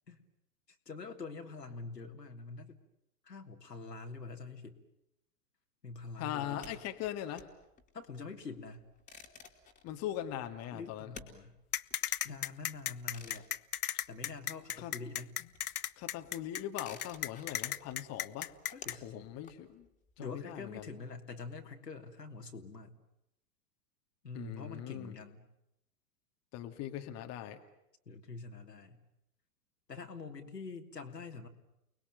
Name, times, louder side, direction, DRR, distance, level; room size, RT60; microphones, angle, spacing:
voice 1, 0.9-2.8 3.2-4.8 5.8-6.8 7.9-8.8 10.7-11.6 12.2-13.5 14.1-15.3 18.7-19.3 20.2-22.9 24.2-25.5 28.1-29.0 29.9-31.5, left 4 dB, 85° left, 3 dB, 3.3 m, -45 dB
voice 2, 6.2-7.5 9.8-11.1 14.7-14.9 15.4-15.5 16.0-18.5 19.0-19.9 20.2-20.9 24.3-25.1 26.5-27.6, left 11 dB, 30° left, 6 dB, 2.2 m, -40 dB
civic parking brake, 6.6-14.8 15.0-20.8, left 5 dB, 15° left, 3.3 m, -55 dB
sound 1, 11.7-18.9, left 11 dB, 65° left, 1.0 m, -35 dB
29.5 x 20.5 x 9.2 m, 0.85 s
figure-of-eight pair, 110°, 47 cm